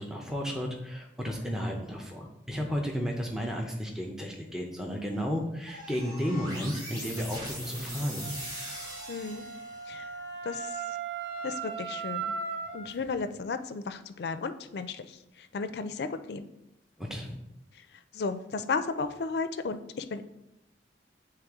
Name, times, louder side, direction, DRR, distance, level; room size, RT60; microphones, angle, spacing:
voice 1, 0.0-8.4 17.0-17.4, equal, 5° right, 0 dB, 0.6 m, -33 dB
sound 1, 5.7-10.0, equal, 20° right, 2.0 m, -40 dB
Wind instrument woodwind instrument, 8.2-12.9, right 5 dB, 60° right, 0.7 m, -37 dB
voice 2, 9.1-9.4 9.9-10.1 10.4-10.8 11.4-12.3 12.7-16.4 18.1-20.2, left 4 dB, 65° left, 10 dB, 0.4 m, -34 dB
8.1 x 3.3 x 3.6 m, 0.86 s
head